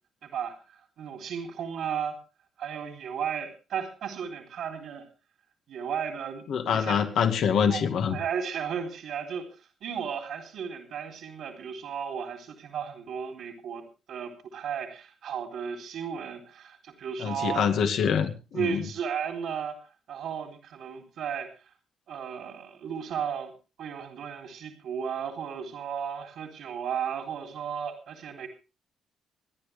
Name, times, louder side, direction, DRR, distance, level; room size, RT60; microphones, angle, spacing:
voice 1, 0.2-2.2 2.6-5.1 5.7-7.0 7.7-17.8 18.5-19.8 20.1-21.7 22.1-23.5 23.8-28.5, right 7 dB, 75° right, 4 dB, 3.6 m, -34 dB
voice 2, 6.5-8.2 17.2-18.8, left 7 dB, 70° left, 7 dB, 2.3 m, -25 dB
28.0 x 10.5 x 3.4 m, 0.33 s
cardioid pair, 90°, 0 cm